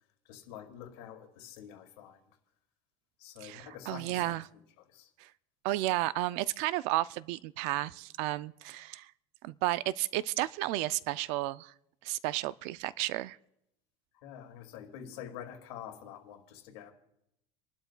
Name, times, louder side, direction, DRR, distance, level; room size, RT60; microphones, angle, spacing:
voice 1, 0.3-2.2 3.2-5.1 14.1-16.9, left 9 dB, 85° left, 2.2 m, -47 dB
voice 2, 3.4-4.4 5.2-5.3 5.6-9.1 9.4-11.7 12.0-13.4, right 17 dB, 60° right, 0.4 m, -32 dB
29.5 x 12.0 x 2.2 m
cardioid pair, 165°, 13 cm